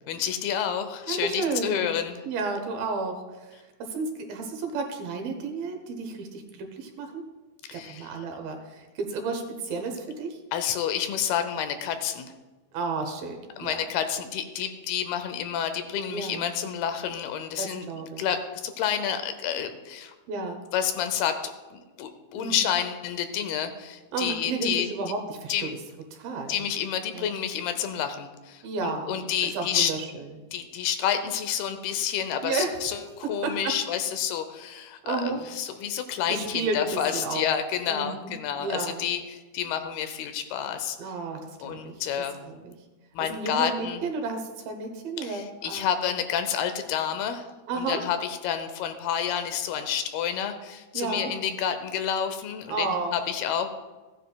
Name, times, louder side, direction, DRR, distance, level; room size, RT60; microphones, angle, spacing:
voice 1, 0.1-2.2 7.7-8.1 10.5-12.3 13.6-17.9 18.2-18.4 18.6-20.1 20.7-24.9 25.5-25.7 26.5-29.9 30.5-41.0 41.6-42.4 43.1-44.0 45.2-52.9 53.1-53.7, left 8 dB, 85° left, 8 dB, 2.8 m, -29 dB
voice 2, 1.1-1.8 2.2-7.2 7.7-10.4 12.7-13.8 16.1-16.5 17.6-18.2 20.3-20.6 22.3-22.6 24.1-25.7 26.1-26.7 27.1-27.3 28.6-30.3 32.4-32.8 33.2-33.8 35.0-35.4 36.3-37.4 37.9-38.3 38.6-39.0 41.0-42.0 42.5-42.8 43.3-45.9 47.7-48.0 50.9-51.3 52.7-53.1, right 3 dB, 75° right, 4 dB, 2.8 m, -32 dB
15.5 x 9.8 x 2.3 m, 1.2 s
omnidirectional pair, 4.4 m